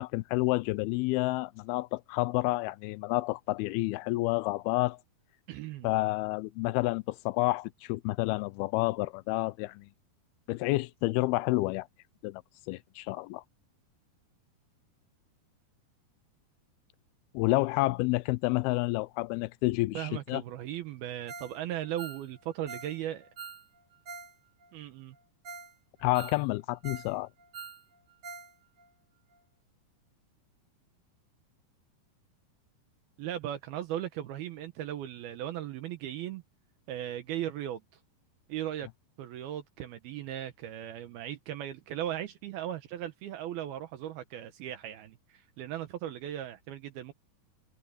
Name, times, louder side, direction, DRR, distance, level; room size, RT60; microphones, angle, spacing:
voice 1, 0.0-5.0 5.8-9.9 10.5-11.9 12.2-12.4 12.7-13.4 17.3-20.4 26.0-27.3, left 20 dB, 80° left, 2.3 m, -29 dB
voice 2, 5.5-5.9 19.9-23.3 24.7-25.2 33.2-36.4 36.9-37.8 38.5-38.9 39.2-47.1, right 12 dB, 70° right, 2.8 m, -37 dB
Ringtone, 21.3-21.6 21.8-24.3 24.6-24.7 25.1-25.2 25.4-25.7 26.0-27.1 27.4-28.5 28.8-28.9 29.3-29.4, right 5 dB, 35° right, 3.6 m, -45 dB
omnidirectional pair, 4.8 m